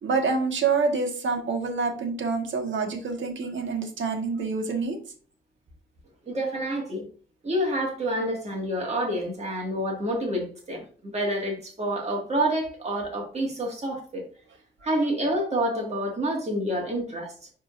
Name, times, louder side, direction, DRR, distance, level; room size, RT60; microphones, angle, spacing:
voice 1, 0.0-5.0, right 4 dB, 70° right, 4 dB, 1.4 m, -27 dB
voice 2, 6.3-7.1 7.4-14.2 14.8-17.3, right 1 dB, 35° right, 0 dB, 2.0 m, -28 dB
10.5 x 3.7 x 2.6 m, 0.42 s
wide cardioid pair, 180°, 20 cm